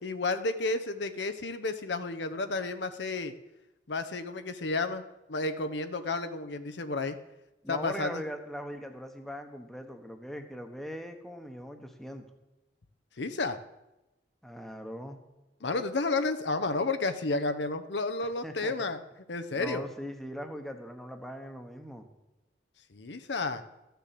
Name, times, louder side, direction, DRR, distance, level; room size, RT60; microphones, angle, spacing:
voice 1, 0.0-3.3 3.9-5.0 5.3-7.2 7.7-8.2 13.2-13.6 15.6-19.0 19.3-19.8 22.9-23.6, left 3 dB, 65° left, 9 dB, 0.8 m, -31 dB
voice 2, 7.6-12.3 14.4-15.2 18.4-18.9 19.5-22.1, equal, ahead, 5 dB, 1.1 m, -40 dB
13.5 x 6.9 x 7.6 m, 0.97 s
head